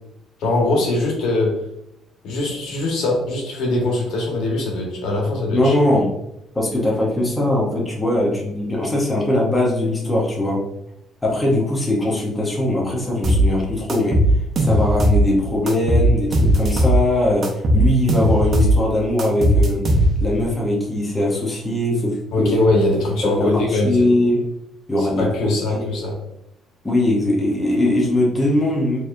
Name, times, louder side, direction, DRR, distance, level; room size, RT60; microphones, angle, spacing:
voice 1, 0.4-1.6 2.2-5.7 22.3-24.0 25.0-26.1, left 2 dB, 75° left, -1 dB, 1.4 m, -21 dB
voice 2, 5.5-6.1 6.5-10.6 11.2-14.2 14.6-19.8 20.2-22.5 23.2-24.4 24.9-26.0 26.8-29.0, left 1 dB, 10° left, -3 dB, 0.7 m, -20 dB
sound 1, 13.2-13.5 13.9-15.3 15.7-17.0 17.4-18.8 19.2-20.4, equal, 40° right, 0.7 m, -17 dB
4.5 x 2.9 x 2.5 m, 0.80 s
cardioid pair, 150°, 0 cm